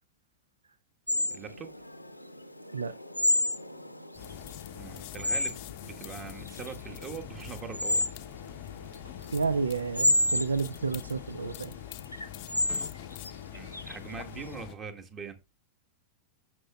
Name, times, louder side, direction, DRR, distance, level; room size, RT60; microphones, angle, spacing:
sound 1, 1.1-14.5, left 1 dB, 90° left, 0.8 m, -31 dB
voice 1, 1.3-1.7 4.8-8.0 13.5-15.4, right 6 dB, 25° right, 1.4 m, -42 dB
sound 2, 4.1-14.8, left 15 dB, 45° left, 0.6 m, -44 dB
voice 2, 9.3-11.7, right 4 dB, 75° right, 0.4 m, -30 dB
14.5 x 5.9 x 2.3 m
figure-of-eight pair, 90°, 0 cm